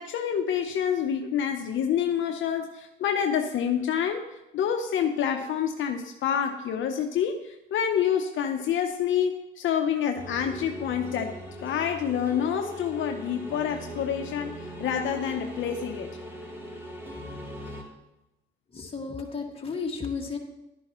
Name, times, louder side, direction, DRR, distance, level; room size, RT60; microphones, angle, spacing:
voice 1, 0.0-4.2 4.5-14.5 14.8-16.1, left 8 dB, 75° left, 4 dB, 0.8 m, -27 dB
sound 1, 10.2-17.8, equal, 10° right, 2.6 m, -40 dB
voice 2, 18.7-20.4, left 5 dB, 30° left, 0 dB, 2.0 m, -33 dB
11.5 x 10.0 x 3.1 m, 0.93 s
cardioid pair, 90°, 20 cm